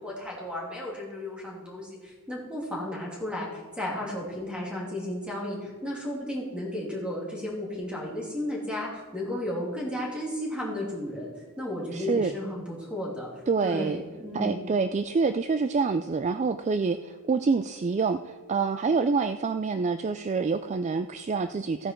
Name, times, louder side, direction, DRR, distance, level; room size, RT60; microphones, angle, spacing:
voice 1, 0.0-11.3 11.6-13.3 13.6-14.6, left 1 dB, 5° right, -4 dB, 2.9 m, -34 dB
voice 2, 11.9-12.3 13.5-14.0 14.3-21.9, right 4 dB, 30° right, 10 dB, 0.3 m, -27 dB
15.0 x 9.4 x 4.5 m, 1.4 s
head